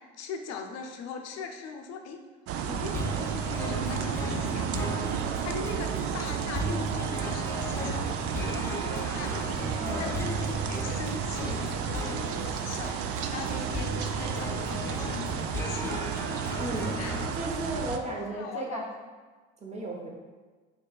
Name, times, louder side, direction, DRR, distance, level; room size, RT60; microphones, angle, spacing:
voice 1, 0.0-2.2 2.7-5.1 5.4-9.5 10.0-16.1 17.0-17.2 17.4-17.5 18.0-18.8, left 5 dB, 55° left, 4 dB, 0.6 m, -40 dB
sound 1, 2.5-18.0, right 7 dB, 50° right, 0.4 m, -32 dB
sound 2, 2.9-17.3, equal, 10° left, 0.5 m, -36 dB
voice 2, 9.8-10.2 16.6-17.0 17.3-18.9 19.6-20.1, right 1 dB, 20° right, 0 dB, 0.9 m, -35 dB
5.2 x 3.0 x 2.3 m, 1.4 s
hypercardioid pair, 65°, 31 cm